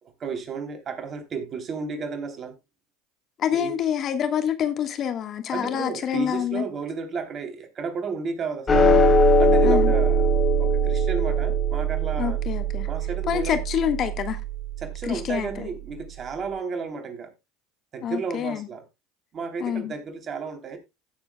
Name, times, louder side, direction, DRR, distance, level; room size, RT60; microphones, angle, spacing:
voice 1, 0.0-2.5 3.5-3.7 5.5-9.0 9.4-12.4 12.9-13.6 14.8-17.3 17.9-18.9 19.3-20.8, right 5 dB, 40° right, 3.2 m, -33 dB
voice 2, 3.4-6.7 9.6-9.9 12.2-12.9 13.3-14.4 15.1-15.7 18.0-18.7 19.6-19.9, left 9 dB, 45° left, 1.5 m, -27 dB
sound 1, 8.7-15.2, right 1 dB, 25° left, 4.0 m, -21 dB
16.5 x 7.4 x 2.3 m
hypercardioid pair, 75°, 0 cm